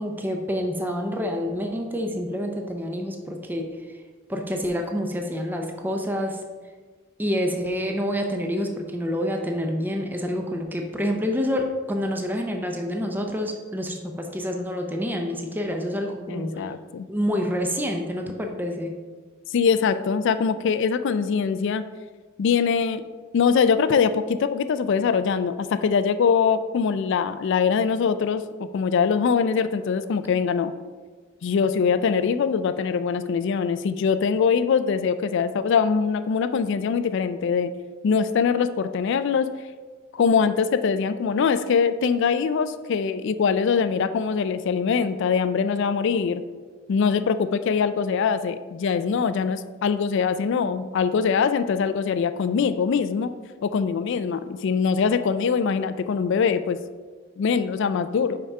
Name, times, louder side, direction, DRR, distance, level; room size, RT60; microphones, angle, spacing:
voice 1, 0.0-3.7 4.3-6.4 7.2-16.6 17.1-19.0, equal, 10° right, 3 dB, 0.6 m, -27 dB
voice 2, 16.3-17.1 19.5-21.8 22.4-23.0 23.3-30.7 31.4-37.7 38.0-39.5 40.1-46.4 46.9-53.3 53.6-56.8 57.4-58.4, left 6 dB, 60° left, 11 dB, 0.4 m, -23 dB
5.6 x 4.8 x 5.4 m, 1.4 s
head